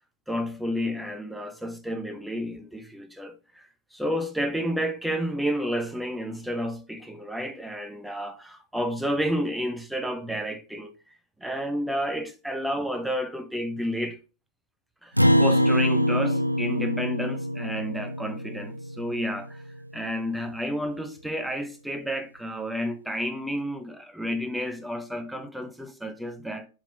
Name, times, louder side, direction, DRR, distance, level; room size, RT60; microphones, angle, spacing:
voice 1, 0.3-14.2 15.0-19.6 19.9-26.7, equal, ahead, 0.9 m, -31 dB
Acoustic guitar, 15.2-19.9, equal, 90° right, 0.4 m, -24 dB
7.2 x 3.7 x 3.8 m
figure-of-eight pair, 90°, 0 cm